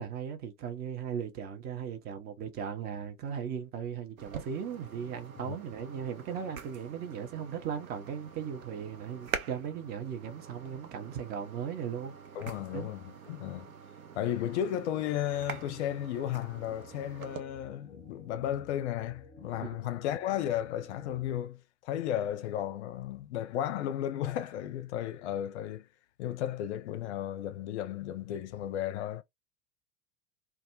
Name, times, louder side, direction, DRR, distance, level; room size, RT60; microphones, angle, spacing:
voice 1, 0.0-12.1 12.7-12.9 19.6-19.8, right 8 dB, 25° right, 0.5 m, -37 dB
sound 1, 4.2-17.4, right 7 dB, 75° right, 0.6 m, -45 dB
voice 2, 12.4-13.7 14.1-25.9 26.2-29.2, left 11 dB, 55° left, 0.5 m, -34 dB
sound 2, 14.1-21.4, left 1 dB, 10° left, 0.7 m, -56 dB
2.2 x 2.0 x 2.7 m
figure-of-eight pair, 80°, 42 cm